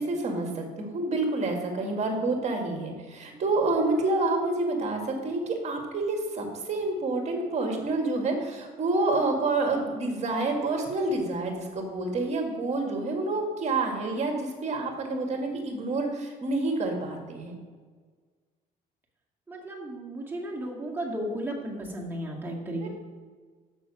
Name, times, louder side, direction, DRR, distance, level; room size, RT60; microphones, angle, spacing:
voice 1, 0.0-17.5 22.8-22.9, right 2 dB, 40° right, 2 dB, 1.9 m, -28 dB
voice 2, 19.5-22.9, right 1 dB, 10° right, -2 dB, 2.0 m, -34 dB
6.8 x 6.3 x 6.2 m, 1.5 s
cardioid pair, 110°, 17 cm